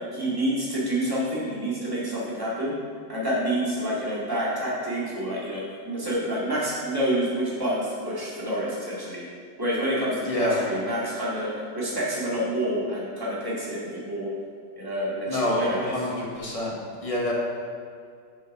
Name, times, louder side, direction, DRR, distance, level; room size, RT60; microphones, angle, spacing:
voice 1, 0.0-2.7 3.1-9.2 9.6-11.5 11.8-14.3 14.8-15.9, right 1 dB, 10° right, -8 dB, 2.1 m, -28 dB
voice 2, 10.2-10.6 15.3-16.7 17.0-17.3, left 1 dB, 20° left, -3 dB, 1.0 m, -27 dB
7.4 x 5.3 x 5.8 m, 2.2 s
omnidirectional pair, 2.3 m